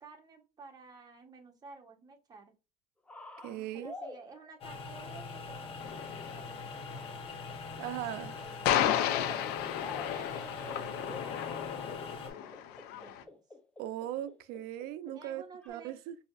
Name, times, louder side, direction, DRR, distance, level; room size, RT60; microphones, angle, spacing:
voice 1, 0.0-2.5 3.4-7.6 8.4-9.2 10.0-13.4 15.1-15.9, right 4 dB, 25° right, 0.9 m, -53 dB
sound 1, 3.1-4.4 5.7-6.0 6.9-7.4 7.9-8.6 9.0-15.2 15.6-15.7, left 2 dB, 10° left, 0.5 m, -48 dB
voice 2, 3.4-3.9 7.8-8.3 13.8-16.2, right 12 dB, 90° right, 0.4 m, -39 dB
sound 2, 4.6-12.3, left 4 dB, 35° left, 0.8 m, -43 dB
sound 3, 5.8-13.2, left 11 dB, 85° left, 0.5 m, -33 dB
5.1 x 2.7 x 2.3 m
cardioid pair, 145°, 16 cm